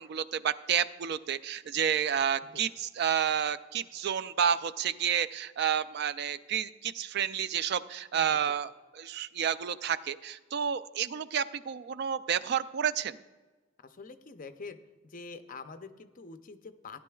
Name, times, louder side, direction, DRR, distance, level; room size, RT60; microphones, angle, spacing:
voice 1, 0.0-13.2, right 8 dB, 55° right, 14 dB, 0.3 m, -30 dB
voice 2, 13.8-14.8 15.0-17.0, left 4 dB, 45° left, 9 dB, 0.6 m, -46 dB
15.5 x 10.0 x 2.3 m, 1.2 s
head